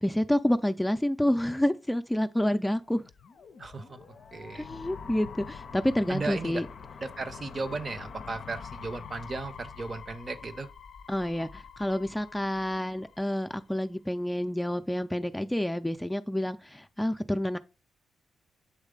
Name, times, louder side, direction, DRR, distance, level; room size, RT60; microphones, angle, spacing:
voice 1, 0.0-3.0 4.5-6.7 11.1-17.6, left 1 dB, 10° left, 0.5 m, -28 dB
sound 1, 2.9-13.8, left 6 dB, 60° left, 0.5 m, -46 dB
voice 2, 3.6-4.7 6.1-6.6 7.0-10.7, right 3 dB, 45° right, 0.8 m, -36 dB
8.2 x 3.1 x 3.7 m
hypercardioid pair, 40°, 0 cm